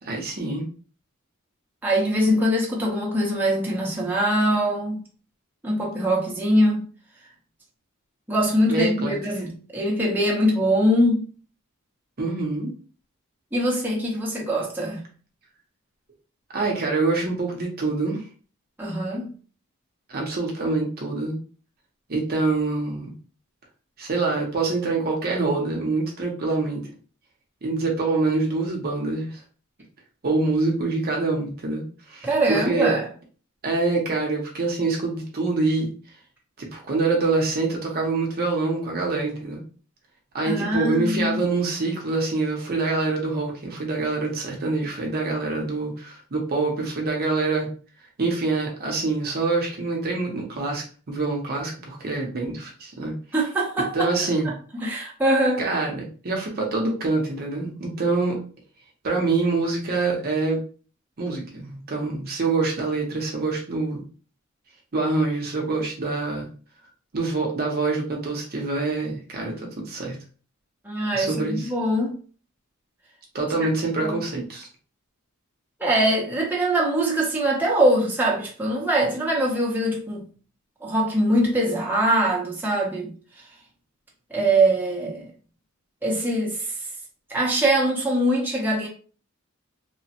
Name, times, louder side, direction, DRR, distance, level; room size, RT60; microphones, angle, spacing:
voice 1, 0.0-0.7 8.7-9.2 12.2-12.7 16.5-18.2 20.1-21.4 22.1-23.1 24.0-26.9 27.6-29.4 30.2-32.9 33.6-35.9 36.6-39.6 40.3-47.7 48.2-53.1 53.9-54.5 55.6-58.4 59.0-60.6 61.2-64.0 64.9-66.5 67.1-70.2 71.1-71.7 73.3-74.7, right 3 dB, 45° right, 0.7 m, -25 dB
voice 2, 1.8-5.0 5.6-6.9 8.3-11.3 13.5-15.0 18.8-19.3 32.2-33.1 40.4-41.4 53.3-54.1 54.4-54.5 54.8-55.6 70.8-72.2 74.0-74.2 75.8-80.3 80.8-83.1 84.3-85.3 86.0-86.8 87.3-88.9, right 1 dB, 10° right, 0.8 m, -22 dB
3.0 x 2.0 x 2.8 m
head